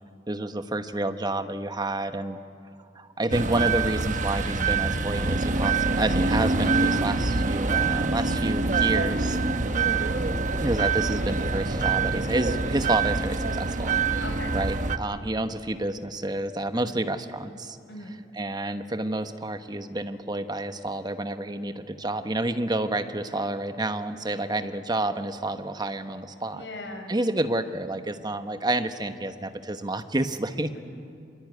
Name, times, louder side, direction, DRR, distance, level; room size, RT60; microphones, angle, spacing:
voice 1, 0.3-2.4 2.9-9.4 10.6-14.2 14.5-17.8 18.3-26.7 27.1-30.8, right 2 dB, 25° right, 9 dB, 1.1 m, -29 dB
sound 1, 3.3-15.0, right 4 dB, 45° right, 1.1 m, -25 dB
voice 2, 9.5-9.9 14.2-14.5 16.7-17.0 17.9-18.1 26.5-27.1, left 1 dB, 90° left, 4 dB, 4.8 m, -39 dB
26.0 x 23.0 x 9.7 m, 2.4 s
head